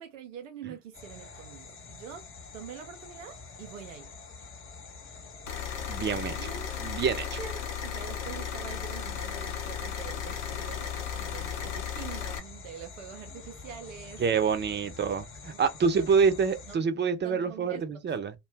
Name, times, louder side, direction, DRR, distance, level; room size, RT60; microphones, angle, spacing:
voice 1, 0.0-2.2 2.5-4.1 6.4-6.7 7.4-14.2 14.7-14.9 15.8-16.2 16.7-16.9 17.2-18.2, right 8 dB, 85° right, 0.5 m, -45 dB
sound 1, 0.9-16.8, left 4 dB, 35° left, 0.9 m, -47 dB
sound 2, 5.5-12.4, left 8 dB, 80° left, 0.8 m, -35 dB
voice 2, 5.9-6.5 6.8-7.4 14.2-18.3, right 5 dB, 30° right, 0.6 m, -27 dB
2.5 x 2.2 x 3.3 m
hypercardioid pair, 60°, 38 cm